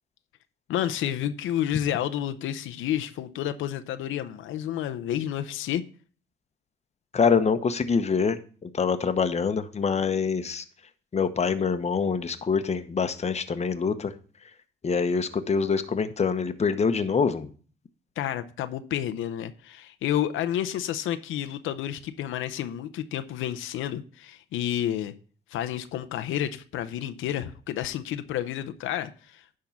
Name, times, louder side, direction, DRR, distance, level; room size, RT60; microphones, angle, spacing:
voice 1, 0.7-5.8 18.2-25.1 25.5-29.4, left 11 dB, 85° left, 0.7 m, -30 dB
voice 2, 7.1-10.6 11.1-14.1 14.8-17.5, left 5 dB, 35° left, 0.9 m, -25 dB
10.5 x 3.8 x 7.1 m
cardioid pair, 90°, 20 cm